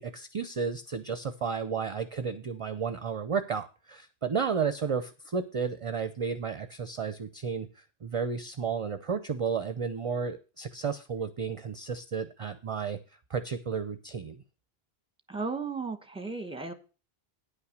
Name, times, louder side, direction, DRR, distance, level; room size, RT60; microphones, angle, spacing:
voice 1, 0.0-13.0 13.3-14.4, right 6 dB, 40° right, 11 dB, 0.6 m, -32 dB
voice 2, 15.3-16.7, right 4 dB, 5° right, 8 dB, 0.9 m, -35 dB
9.9 x 5.8 x 6.4 m, 0.35 s
omnidirectional pair, 1.1 m